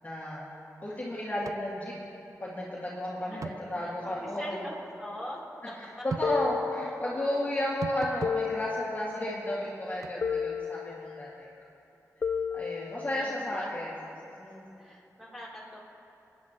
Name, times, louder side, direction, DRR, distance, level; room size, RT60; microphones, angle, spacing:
voice 1, 0.0-0.5 0.8-2.0 2.4-4.6 5.8-11.5 12.5-13.9 14.4-14.8, left 1 dB, 30° left, -7 dB, 2.1 m, -33 dB
sound 1, 1.4-1.6 1.9-2.0 3.4-3.6 6.1-6.3 7.8-8.4 10.0-10.2, right 5 dB, 65° right, 0.4 m, -37 dB
voice 2, 3.8-5.4 6.0-6.4 7.1-7.4 13.1-13.7 14.8-15.8, left 1 dB, ahead, -8 dB, 3.5 m, -43 dB
sound 2, 6.2-7.4 8.2-9.4 10.2-11.4 12.2-13.4, left 6 dB, 55° left, 0.5 m, -33 dB
28.5 x 9.5 x 3.1 m, 2.9 s
wide cardioid pair, 105°, 6 cm